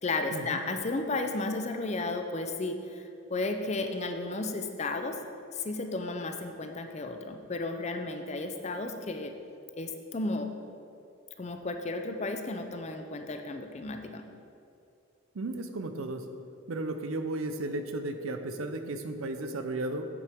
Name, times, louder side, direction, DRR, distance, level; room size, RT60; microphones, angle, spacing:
voice 1, 0.0-3.0 3.3-5.2 5.5-9.3 9.7-10.5 11.4-14.2, left 2 dB, 30° left, 5 dB, 0.5 m, -33 dB
voice 2, 15.3-16.3 16.7-20.1, right 2 dB, 85° right, 8 dB, 0.6 m, -34 dB
8.4 x 7.9 x 3.5 m, 2.5 s
head